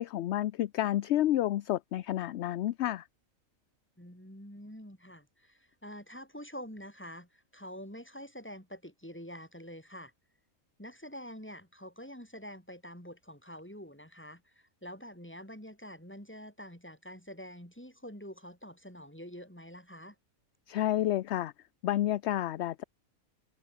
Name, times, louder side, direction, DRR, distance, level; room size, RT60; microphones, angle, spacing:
voice 1, 0.0-3.1 20.7-21.5 21.8-22.8, left 13 dB, 65° left, 0.7 m, -30 dB
voice 2, 4.0-10.1 10.8-20.2, equal, 10° left, 7.2 m, -46 dB
omnidirectional pair, 1.5 m